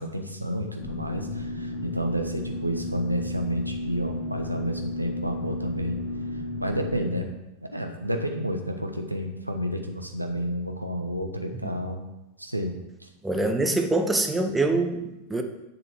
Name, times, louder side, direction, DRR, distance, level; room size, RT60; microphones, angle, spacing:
voice 1, 0.0-6.0 6.6-7.3 7.6-12.0 12.4-12.8, equal, 85° right, 4 dB, 1.2 m, -30 dB
sound 1, 0.8-7.2, left 2 dB, 50° left, 2.5 m, -33 dB
voice 2, 13.2-15.4, right 2 dB, 10° right, 5 dB, 1.2 m, -25 dB
11.0 x 6.9 x 4.7 m, 0.94 s
figure-of-eight pair, 90°, 0 cm